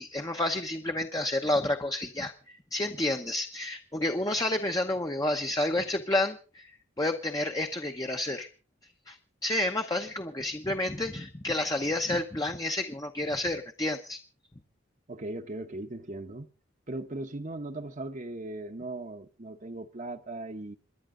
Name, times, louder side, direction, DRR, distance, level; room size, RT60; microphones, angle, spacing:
voice 1, 0.0-8.5 9.1-14.2, left 1 dB, 20° left, 0.9 m, -30 dB
voice 2, 15.1-16.5 16.9-20.8, right 2 dB, 40° right, 1.0 m, -38 dB
27.0 x 11.0 x 3.8 m
head